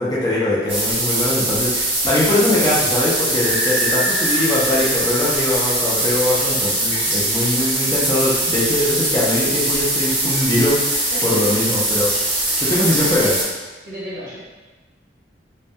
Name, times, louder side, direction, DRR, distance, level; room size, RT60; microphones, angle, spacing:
voice 1, 0.0-12.1 12.6-13.4, left 1 dB, 20° left, -7 dB, 0.4 m, -21 dB
sound 1, 0.7-13.4, right 1 dB, 30° right, 0.6 m, -21 dB
sound 2, 3.3-6.2, equal, 85° left, 0.7 m, -28 dB
voice 2, 11.1-11.5 12.7-12.8 13.8-14.4, equal, 55° right, -8 dB, 0.9 m, -33 dB
2.1 x 2.1 x 2.7 m, 1.2 s
head